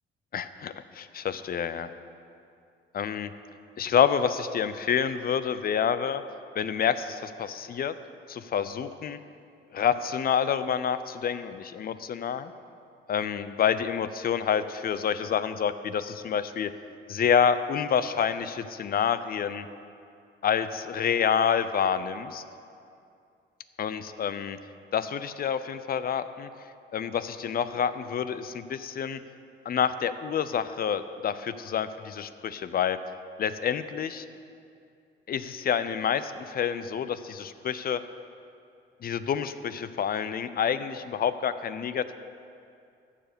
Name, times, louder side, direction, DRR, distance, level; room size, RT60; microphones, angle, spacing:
voice 1, 0.3-1.9 2.9-3.3 3.8-6.2 6.5-7.9 8.3-9.2 9.7-12.5 13.1-16.7 17.1-19.7 20.4-22.4 23.8-24.6 24.9-26.5 26.9-29.2 29.7-33.0 33.4-34.2 35.3-38.0 39.0-42.1, left 8 dB, 50° left, 13 dB, 0.5 m, -28 dB
14.0 x 5.0 x 6.8 m, 2.5 s
cardioid pair, 90°, 20 cm